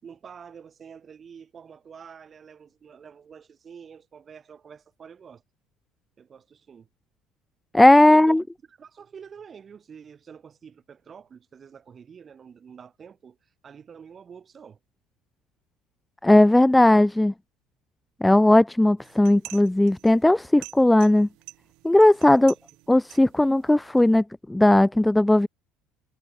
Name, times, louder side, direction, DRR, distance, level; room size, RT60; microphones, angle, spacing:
voice 1, 0.0-5.4 6.2-6.9 8.0-14.8 22.2-22.5, right 7 dB, 35° right, 6.7 m, -47 dB
voice 2, 7.7-8.4 16.2-17.3 18.2-21.3 21.8-22.5 22.9-25.5, left 1 dB, 5° left, 0.5 m, -17 dB
sound 1, 19.0-24.2, right 24 dB, 60° right, 5.9 m, -47 dB
hypercardioid pair, 65°, 0 cm